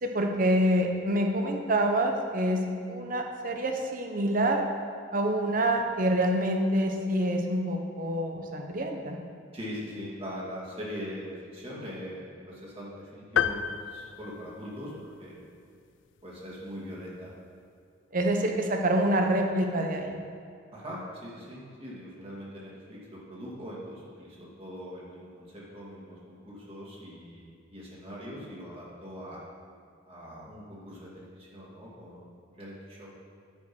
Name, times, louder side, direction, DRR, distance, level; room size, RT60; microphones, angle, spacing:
voice 1, 0.0-2.6 2.9-4.6 5.1-9.2 18.1-20.2, right 1 dB, 45° right, 3 dB, 1.0 m, -26 dB
voice 2, 9.5-15.4 16.2-17.3 20.7-29.4 30.1-33.1, equal, 30° right, -6 dB, 2.3 m, -42 dB
sound 1, 13.4-15.1, left 8 dB, 70° left, 0.3 m, -30 dB
9.1 x 5.2 x 6.1 m, 2.4 s
head